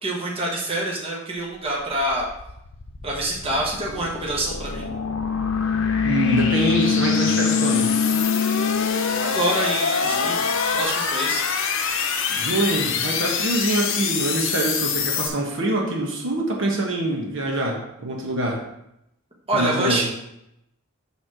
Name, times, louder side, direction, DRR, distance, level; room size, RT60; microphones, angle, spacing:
voice 1, 0.0-2.3 3.0-4.9 9.2-10.5 10.7-11.4 19.5-20.2, right 1 dB, 25° right, -3 dB, 1.3 m, -26 dB
sound 1, 1.6-15.3, left 6 dB, 60° left, 0.8 m, -27 dB
sound 2, 4.6-10.9, left 6 dB, 80° left, 0.4 m, -24 dB
voice 2, 6.0-7.9 12.3-18.6 19.5-20.1, right 1 dB, 60° right, 0 dB, 1.3 m, -25 dB
7.0 x 3.6 x 6.2 m, 0.82 s
head